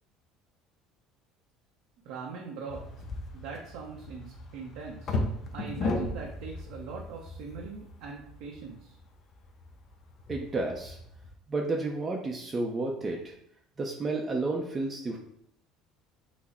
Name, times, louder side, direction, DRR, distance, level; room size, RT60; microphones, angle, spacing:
voice 1, 2.0-2.8 3.3-5.2 5.5-9.0, right 5 dB, 75° right, -2 dB, 0.7 m, -41 dB
sound 1, 2.7-11.3, left 2 dB, 40° left, 0.7 m, -37 dB
voice 2, 10.3-11.0 11.5-13.3 13.8-15.2, right 3 dB, 20° right, 0 dB, 0.6 m, -31 dB
5.9 x 2.1 x 4.2 m, 0.71 s
cardioid pair, 140°, 0 cm